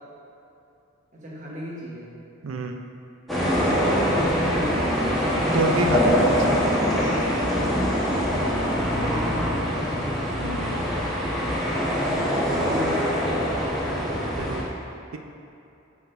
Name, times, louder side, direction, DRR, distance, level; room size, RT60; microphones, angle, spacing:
voice 1, 1.1-2.1 3.5-4.9 8.8-9.8 12.4-13.3, equal, 40° right, -5 dB, 1.1 m, -33 dB
sound 1, 3.3-14.6, equal, ahead, 1.2 m, -23 dB
voice 2, 5.5-6.7 10.4-10.9 14.4-14.6, right 3 dB, 80° right, 4 dB, 0.5 m, -28 dB
6.9 x 5.9 x 2.6 m, 2.7 s
head